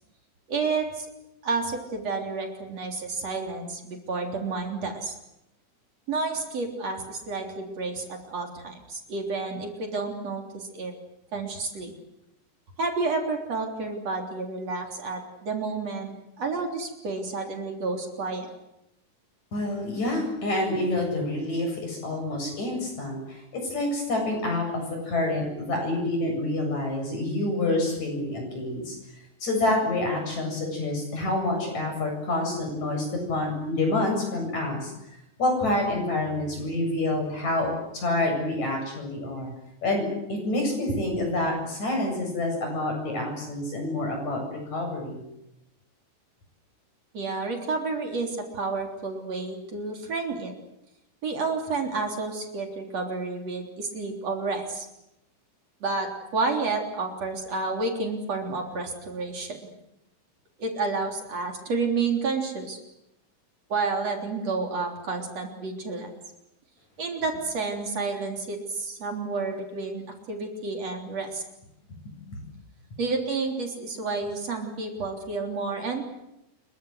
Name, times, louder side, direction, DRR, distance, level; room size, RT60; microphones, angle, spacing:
voice 1, 0.5-1.1 1.4-5.2 6.1-10.9 11.3-11.9 12.8-18.5 47.1-50.5 51.2-54.9 55.8-59.6 60.6-62.8 63.7-66.1 67.0-70.0 70.3-71.4 73.0-76.0, right 4 dB, 55° right, 3 dB, 4.6 m, -30 dB
voice 2, 19.5-23.4 23.7-24.7 25.0-29.0 29.4-34.9 35.4-39.5 39.8-45.2, left 2 dB, 65° left, 2 dB, 9.3 m, -27 dB
27.0 x 23.5 x 8.1 m, 0.85 s
omnidirectional pair, 3.5 m